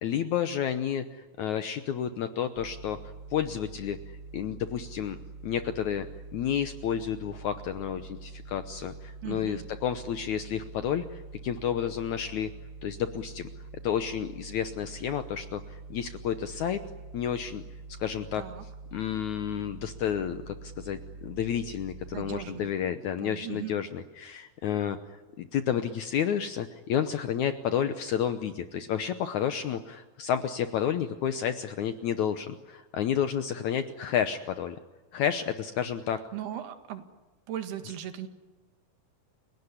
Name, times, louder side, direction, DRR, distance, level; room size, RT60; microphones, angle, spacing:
voice 1, 0.0-3.0 3.3-4.0 4.3-5.2 5.4-6.1 6.3-12.5 12.8-13.5 13.8-16.8 17.1-17.6 18.0-18.4 18.9-25.0 25.4-34.8 35.1-36.2, left 9 dB, 70° left, 10 dB, 1.8 m, -30 dB
sound 1, 2.6-22.5, right 3 dB, 60° right, 1.2 m, -45 dB
voice 2, 9.2-9.7 18.3-18.6 22.1-22.7 23.2-23.7 36.3-37.1 37.5-38.3, right 11 dB, 85° right, 8 dB, 3.9 m, -38 dB
30.0 x 18.0 x 9.9 m, 1.2 s
omnidirectional pair, 4.5 m